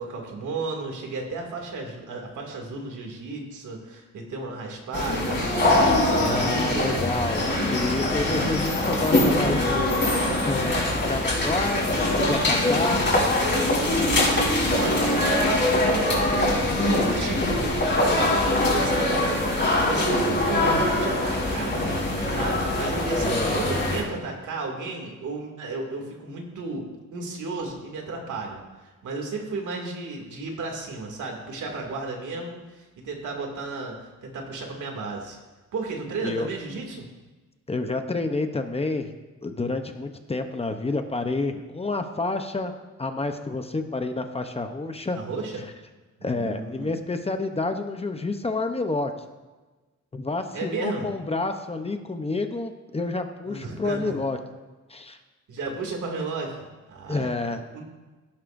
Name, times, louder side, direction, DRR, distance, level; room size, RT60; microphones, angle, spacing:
voice 1, 0.0-7.7 8.2-8.7 14.7-17.9 18.3-21.8 22.3-35.4 35.7-37.1 45.1-45.6 46.2-47.0 50.5-51.1 53.4-54.1 55.5-57.3 57.7-57.8, right 3 dB, 90° right, 1 dB, 2.5 m, -34 dB
sound 1, 4.9-24.0, left 1 dB, 40° left, 4.3 m, -23 dB
voice 2, 6.2-7.4 7.7-9.9 10.4-13.0 23.2-23.8 36.2-36.5 37.7-39.1 39.4-42.7 43.0-45.2 46.2-49.1 50.1-54.4 54.9-55.2 57.1-57.6, left 3 dB, 20° left, 6 dB, 0.8 m, -29 dB
16.0 x 11.0 x 2.6 m, 1.2 s
wide cardioid pair, 135°, 29 cm